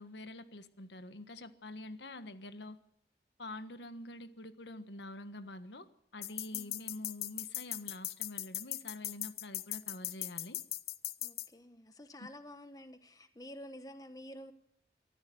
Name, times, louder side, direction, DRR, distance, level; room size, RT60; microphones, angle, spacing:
voice 1, 0.0-2.8 3.4-5.9 6.1-10.6 12.2-12.3, left 2 dB, 90° left, 10 dB, 1.5 m, -46 dB
sound 1, 6.2-11.5, left 15 dB, 60° left, 0.9 m, -38 dB
voice 2, 11.2-14.5, left 1 dB, 20° left, 9 dB, 1.1 m, -50 dB
23.5 x 14.0 x 7.9 m, 0.72 s
head